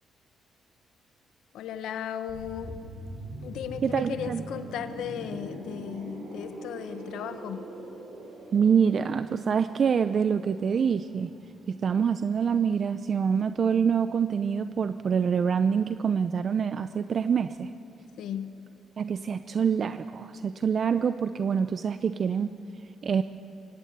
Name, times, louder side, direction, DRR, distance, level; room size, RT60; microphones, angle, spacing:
voice 1, 1.5-2.8 3.4-7.7 18.2-18.5, left 9 dB, 80° left, 9 dB, 1.3 m, -36 dB
sound 1, 2.3-11.9 12.2-12.4, right 1 dB, 70° right, 7.5 m, -42 dB
voice 2, 3.8-4.4 8.5-11.3 11.7-17.7 19.0-22.5 23.0-23.2, right 7 dB, 50° right, 11 dB, 0.7 m, -26 dB
24.0 x 16.5 x 9.6 m, 2.6 s
cardioid pair, 90°, 0 cm